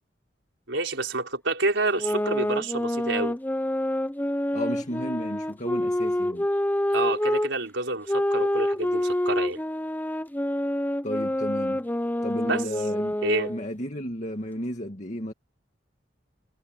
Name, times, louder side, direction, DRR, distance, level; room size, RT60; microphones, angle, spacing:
voice 1, 0.7-3.4 6.9-9.6 12.4-12.6 13.2-13.5, right 3 dB, 75° right, 4.7 m, -28 dB
sound 1, 1.9-7.5 8.1-13.7, left 1 dB, 10° left, 0.8 m, -27 dB
voice 2, 4.5-6.5 11.0-11.8 12.2-13.2 13.5-15.3, equal, 40° left, 2.3 m, -33 dB
head